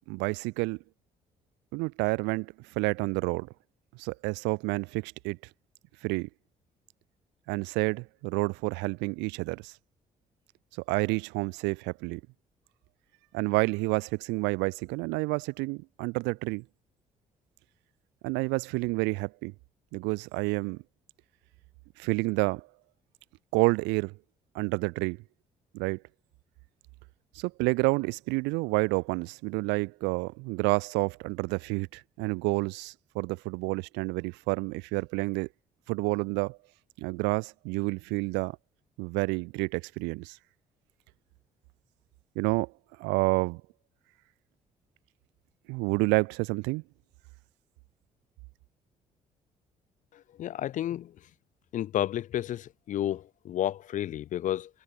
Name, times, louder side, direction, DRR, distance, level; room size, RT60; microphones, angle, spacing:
voice 1, 0.1-0.8 1.7-3.5 4.0-5.4 6.0-6.3 7.5-9.7 10.9-12.2 13.3-16.6 18.2-19.5 19.9-20.8 22.0-22.7 23.5-24.1 24.5-25.2 25.7-26.0 27.4-35.5 35.9-36.6 37.0-38.6 39.0-40.4 42.4-42.7 43.0-43.6 45.7-46.8, right 27 dB, 60° right, 0.4 m, -29 dB
voice 2, 50.4-51.1 51.7-54.7, left 12 dB, 40° left, 0.4 m, -31 dB
figure-of-eight pair, 45°, 21 cm